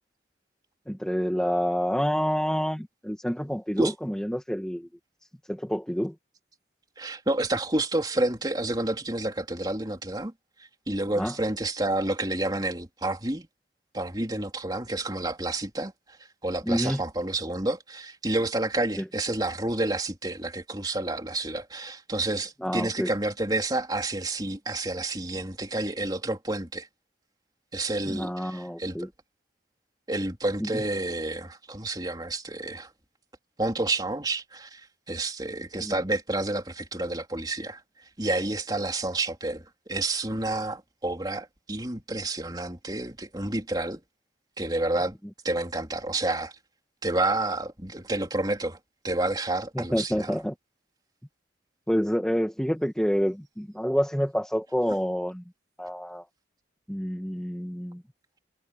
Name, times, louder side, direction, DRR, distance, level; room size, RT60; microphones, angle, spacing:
voice 1, 0.9-4.9 5.5-6.1 11.1-11.4 16.6-17.0 19.0-19.1 22.6-23.2 28.0-29.1 30.6-30.9 35.8-36.0 45.2-45.3 49.7-50.5 51.9-55.4 55.8-56.2 56.9-58.0, equal, 5° left, 1.5 m, -28 dB
voice 2, 7.0-10.3 10.9-13.5 13.9-15.9 16.4-26.9 27.7-29.1 30.1-32.9 33.6-34.8 35.1-37.8 38.2-44.0 44.6-45.2 45.4-46.5 47.0-48.8 49.0-50.4, right 2 dB, 20° right, 3.5 m, -29 dB
head